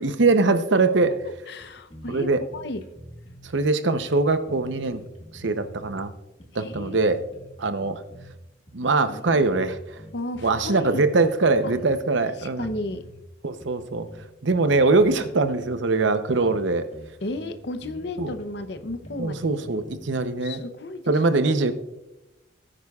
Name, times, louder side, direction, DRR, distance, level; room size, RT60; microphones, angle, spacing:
voice 1, 0.0-1.1 2.1-2.4 3.5-5.0 5.3-6.1 6.5-7.2 7.6-8.0 8.7-10.0 10.4-12.7 13.4-14.1 14.4-16.9 18.2-18.3 19.2-20.6 21.1-21.7, right 3 dB, 75° right, 10 dB, 0.8 m, -22 dB
sound 1, 1.0-1.6 1.9-3.5 4.0-6.1 6.4-8.3 8.7-8.9 9.3-10.9 11.2-11.9 12.1-13.2 13.6-15.7 16.0-16.1 16.3-16.6 16.9-20.2, equal, 30° left, 1.7 m, -45 dB
voice 2, 1.2-2.3 2.5-2.8 6.5-7.1 9.1-9.7 10.1-11.0 11.6-11.7 12.4-13.0 17.2-19.5 20.4-21.4, left 2 dB, 60° left, 9 dB, 0.7 m, -34 dB
18.0 x 10.0 x 2.4 m, 0.95 s
head